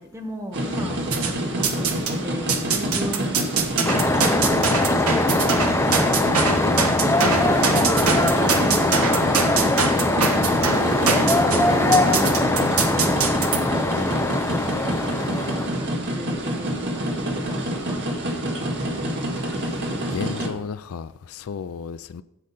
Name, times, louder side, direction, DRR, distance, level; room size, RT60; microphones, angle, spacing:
voice 1, 0.0-1.9 2.2-3.4 4.2-4.5 4.8-6.3 7.4-14.3 14.8-18.0 18.3-19.3, equal, 15° right, 3 dB, 1.2 m, -37 dB
sound 1, 0.5-20.5, equal, 55° right, 1.7 m, -27 dB
sound 2, 1.1-2.1 2.5-13.6, right 4 dB, 70° right, 1.4 m, -24 dB
sound 3, 3.8-15.7, left 2 dB, 10° left, 0.5 m, -22 dB
voice 2, 6.7-7.1 19.6-22.2, left 6 dB, 65° left, 15 dB, 0.4 m, -34 dB
10.0 x 7.7 x 4.2 m, 0.91 s
head